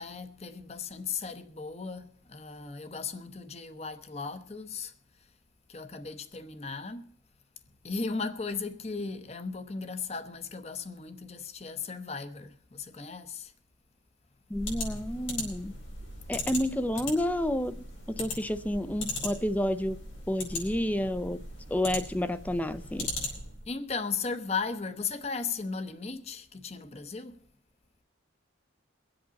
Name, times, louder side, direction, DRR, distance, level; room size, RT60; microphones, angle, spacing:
voice 1, 0.0-4.9 5.7-7.1 7.8-13.5 23.7-27.4, left 4 dB, 35° left, 0.9 m, -36 dB
sound 1, 14.5-23.7, left 2 dB, 85° left, 4.6 m, -38 dB
voice 2, 14.5-15.7 16.3-17.8 18.1-20.0 20.3-21.4 21.7-23.1, left 1 dB, 10° left, 0.5 m, -30 dB
23.5 x 8.0 x 4.0 m
head